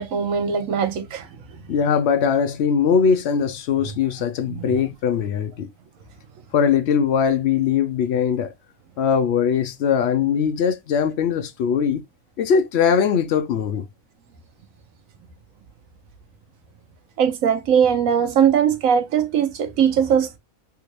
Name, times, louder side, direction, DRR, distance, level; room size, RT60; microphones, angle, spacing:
voice 1, 0.0-1.8 4.5-4.7 17.2-20.4, right 8 dB, 70° right, 1.1 m, -20 dB
voice 2, 1.7-5.7 6.5-8.5 9.0-12.0 12.4-13.8, left 7 dB, 65° left, 0.7 m, -21 dB
3.6 x 2.5 x 3.0 m
omnidirectional pair, 1.5 m